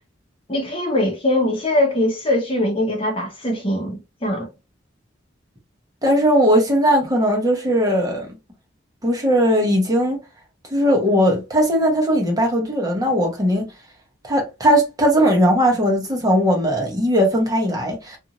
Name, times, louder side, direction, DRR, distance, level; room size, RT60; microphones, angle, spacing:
voice 1, 0.5-4.5, left 1 dB, 30° left, 1.0 m, -22 dB
voice 2, 6.0-8.3 9.0-10.2 10.7-13.7 14.2-18.2, equal, 20° right, 1.0 m, -18 dB
2.6 x 2.6 x 2.9 m
head